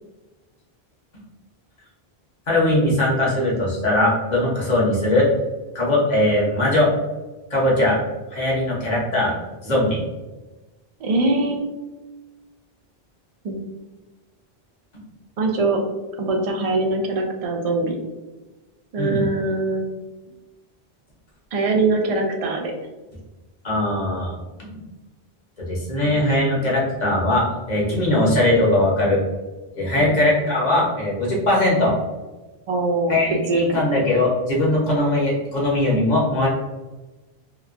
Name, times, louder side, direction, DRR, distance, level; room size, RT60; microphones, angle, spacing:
voice 1, 2.5-5.3 5.7-6.9 7.5-8.0 8.3-9.3 9.6-10.0 19.0-19.2 23.6-24.3 25.7-29.2 29.8-31.9 33.1-36.5, left 1 dB, 45° left, -5 dB, 0.9 m, -20 dB
voice 2, 11.0-11.7 13.4-13.6 15.4-15.8 16.2-18.0 18.9-19.8 21.5-22.7 30.0-30.1 32.7-33.2 33.5-33.8, right 2 dB, 55° right, 2 dB, 0.4 m, -22 dB
2.9 x 2.2 x 2.4 m, 1.1 s
omnidirectional pair, 1.0 m